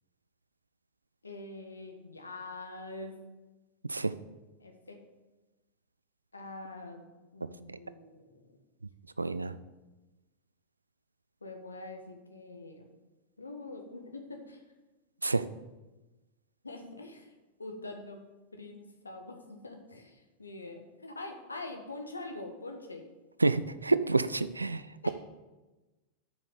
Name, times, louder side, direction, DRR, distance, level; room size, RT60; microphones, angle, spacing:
voice 1, 1.2-3.2 4.6-5.0 6.3-7.1 7.3-8.6 11.4-12.9 13.4-14.6 16.6-17.3 17.6-18.2 18.5-23.0 25.0-25.1, left 2 dB, 80° left, 4 dB, 1.4 m, -44 dB
voice 2, 9.2-9.6 15.2-15.4 23.4-25.1, right 3 dB, 80° right, 15 dB, 0.4 m, -28 dB
8.0 x 6.7 x 6.9 m, 1.1 s
figure-of-eight pair, 90°, 0 cm